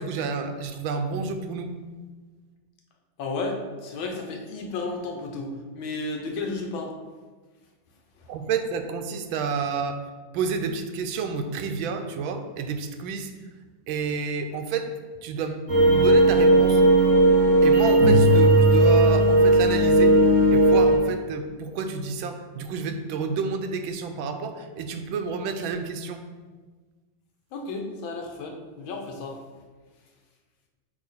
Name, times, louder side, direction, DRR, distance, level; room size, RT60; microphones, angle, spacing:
voice 1, 0.0-1.7 8.3-10.0 10.3-13.3 13.9-14.9 15.2-16.8 17.6-20.1 20.5-26.2, right 5 dB, 85° right, 7 dB, 1.4 m, -30 dB
voice 2, 3.2-6.9 27.5-29.4, left 3 dB, 80° left, 2 dB, 1.6 m, -33 dB
sound 1, 15.7-20.9, right 1 dB, 40° right, 1.3 m, -17 dB
8.5 x 3.0 x 4.1 m, 1.4 s
omnidirectional pair, 2.1 m